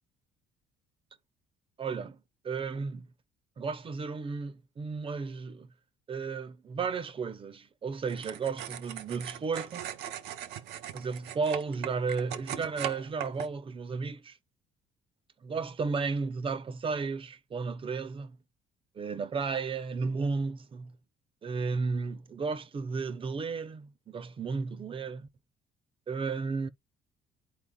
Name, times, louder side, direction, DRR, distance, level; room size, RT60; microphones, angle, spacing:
voice 1, 1.8-3.1 3.6-5.7 6.1-9.8 10.9-14.4 15.4-18.4 18.9-21.0 21.4-25.3 26.1-26.7, right 4 dB, 30° right, 0.7 m, -33 dB
sound 1, 8.0-13.5, right 10 dB, 85° right, 0.8 m, -40 dB
11.0 x 4.5 x 2.3 m
cardioid pair, 110°, 17 cm